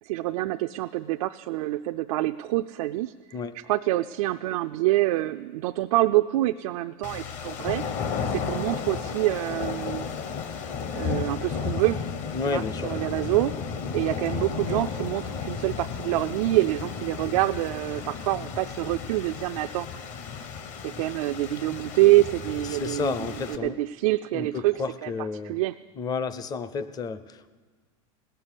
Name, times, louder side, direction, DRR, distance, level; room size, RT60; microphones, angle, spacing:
voice 1, 0.0-3.1 3.7-7.8 8.3-10.1 10.9-12.0 12.5-13.6 13.9-20.0 20.8-24.7 25.0-25.1 25.4-25.7, right 17 dB, 80° right, 7 dB, 0.4 m, -26 dB
voice 2, 3.3-3.6 12.3-13.0 22.6-23.8 24.3-25.6 26.0-27.5, left 5 dB, 20° left, 14 dB, 0.5 m, -31 dB
sound 1, 7.0-23.6, left 6 dB, 45° left, 0.9 m, -33 dB
17.0 x 6.8 x 9.8 m, 1.5 s
supercardioid pair, 140°, 18 cm